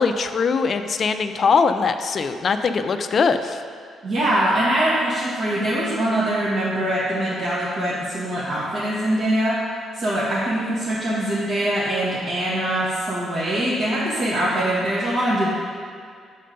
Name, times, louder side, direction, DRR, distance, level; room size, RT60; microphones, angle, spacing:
voice 1, 0.0-3.6, left 5 dB, 50° left, 9 dB, 0.4 m, -21 dB
voice 2, 4.0-9.6 9.9-15.5, right 1 dB, 60° right, -10 dB, 1.5 m, -23 dB
6.4 x 4.2 x 5.3 m, 2.2 s
cardioid pair, 90°, 0 cm